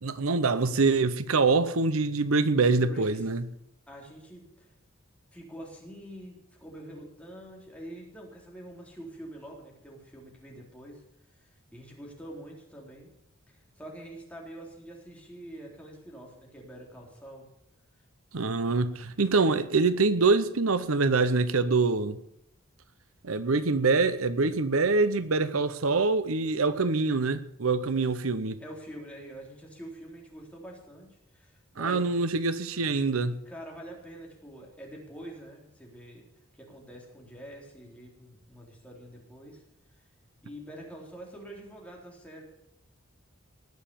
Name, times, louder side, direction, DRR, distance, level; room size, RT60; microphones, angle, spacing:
voice 1, 0.0-3.4 18.3-22.2 23.2-28.6 31.8-33.3, right 3 dB, 85° right, 0.9 m, -25 dB
voice 2, 2.9-3.2 3.9-4.7 5.3-11.0 11.3-13.1 13.5-17.5 28.6-32.1 33.5-36.3 36.5-39.6 40.4-42.4, right 1 dB, 5° left, 3.9 m, -46 dB
19.5 x 7.1 x 7.0 m
head